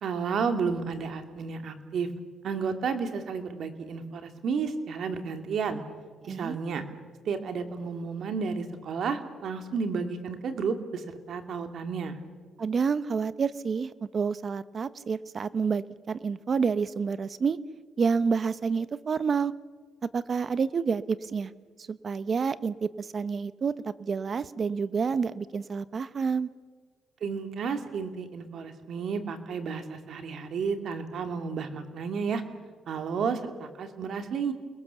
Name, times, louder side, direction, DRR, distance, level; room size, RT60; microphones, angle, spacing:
voice 1, 0.0-2.1 2.4-5.8 6.3-6.8 7.2-12.1 27.2-32.4 32.9-34.5, right 5 dB, 65° right, 7 dB, 2.7 m, -32 dB
voice 2, 12.6-17.6 18.0-19.5 20.0-21.5 21.8-26.5, right 5 dB, 45° right, 15 dB, 1.0 m, -29 dB
29.5 x 21.0 x 7.1 m, 1.5 s
cardioid pair, 90°, 0 cm